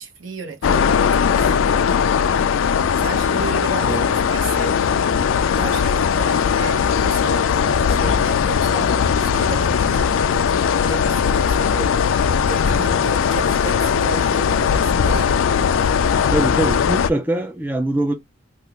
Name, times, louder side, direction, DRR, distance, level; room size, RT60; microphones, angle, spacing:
voice 1, 0.0-1.6 3.0-4.8 5.5-15.3, right 4 dB, 70° right, 1.1 m, -33 dB
sound 1, 0.6-17.1, left 7 dB, 75° left, 0.4 m, -19 dB
voice 2, 3.8-4.1 16.3-18.1, right 1 dB, 10° right, 0.3 m, -22 dB
3.4 x 2.4 x 2.9 m
head